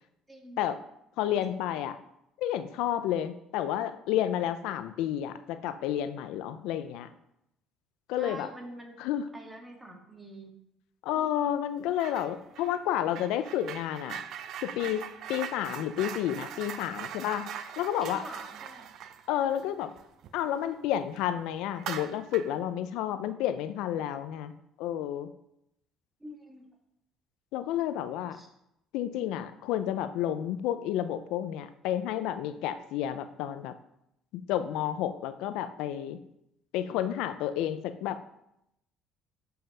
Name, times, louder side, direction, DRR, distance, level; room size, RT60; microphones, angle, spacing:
voice 1, 0.3-0.7 8.1-9.0 9.3-10.5 18.0-18.9 26.2-26.7 28.3-28.5, right 1 dB, 10° right, 1 dB, 1.8 m, -45 dB
voice 2, 1.2-2.0 2.4-7.1 8.1-8.5 9.0-9.2 11.0-14.2 14.6-15.0 15.3-18.2 19.3-19.9 20.3-24.5 24.8-25.3 27.5-28.4 28.9-33.7 34.3-36.2 36.7-38.2, left 11 dB, 80° left, 11 dB, 0.5 m, -31 dB
sound 1, 12.0-12.3 12.6-20.7 21.1-21.2 21.7-22.6, right 9 dB, 65° right, 0.6 m, -41 dB
7.5 x 5.6 x 5.5 m, 0.81 s
cardioid pair, 105°, 0 cm